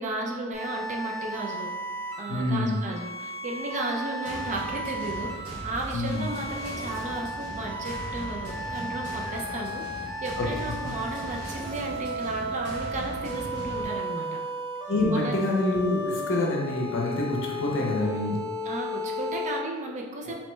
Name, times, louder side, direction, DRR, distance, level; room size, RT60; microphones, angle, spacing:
voice 1, 0.0-1.7 2.2-14.4 15.1-15.4 18.6-20.3, right 2 dB, 35° right, 0 dB, 0.3 m, -34 dB
sound 1, 0.5-19.6, equal, 15° right, 1.0 m, -35 dB
voice 2, 2.3-2.8 5.9-6.3 10.4-10.5 14.9-18.4 20.3-20.4, left 1 dB, 60° left, -2 dB, 0.6 m, -26 dB
sound 2, 4.2-13.8, equal, 90° right, 1.0 m, -39 dB
2.9 x 2.2 x 3.1 m, 1.3 s
head